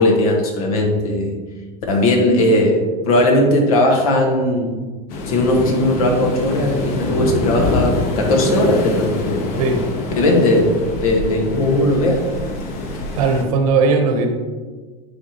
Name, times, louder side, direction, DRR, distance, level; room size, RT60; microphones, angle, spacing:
voice 1, 0.0-1.4 1.9-4.7 5.2-9.5 10.2-10.7 11.0-12.3, left 1 dB, 80° left, 1 dB, 1.4 m, -17 dB
Waves surf, 5.1-13.4, left 2 dB, 50° left, 1.1 m, -24 dB
voice 2, 13.1-14.3, right 4 dB, 75° right, 4 dB, 1.1 m, -17 dB
9.6 x 3.6 x 3.0 m, 1.4 s
supercardioid pair, 125°, 18 cm